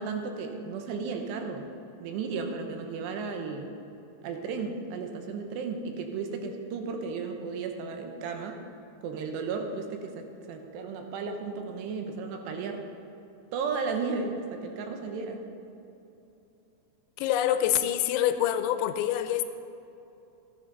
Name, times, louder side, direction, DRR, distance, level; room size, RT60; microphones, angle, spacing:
voice 1, 0.0-1.7 2.0-3.7 4.2-8.6 9.0-12.9 13.5-15.4, right 4 dB, 80° right, 4 dB, 3.0 m, -34 dB
voice 2, 17.2-19.5, left 11 dB, 90° left, 10 dB, 2.9 m, -26 dB
15.0 x 9.8 x 4.0 m, 2.9 s
omnidirectional pair, 5.2 m